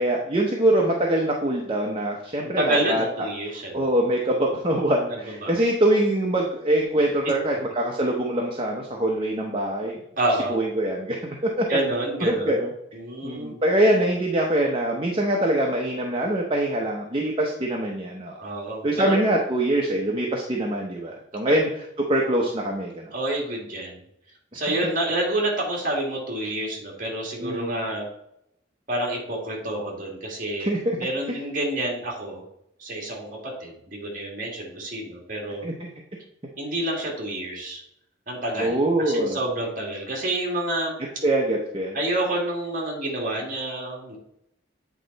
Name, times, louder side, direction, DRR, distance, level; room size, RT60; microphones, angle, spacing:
voice 1, 0.0-3.3 3.7-10.0 10.5-11.6 12.2-12.7 13.2-18.4 18.8-21.7 22.1-23.1 27.4-27.8 30.6-31.0 35.6-35.9 38.6-39.4 41.2-42.0, right 1 dB, 25° right, -1 dB, 0.7 m, -24 dB
voice 2, 2.6-3.8 5.1-5.6 10.2-10.6 11.7-12.6 12.9-13.5 18.4-19.2 21.5-21.6 22.3-22.4 23.1-24.0 24.5-28.1 28.9-30.7 31.0-32.4 32.8-35.7 36.6-37.8 38.3-41.0 41.9-44.2, right 1 dB, 45° right, -1 dB, 2.0 m, -28 dB
8.3 x 4.3 x 4.0 m, 0.77 s
head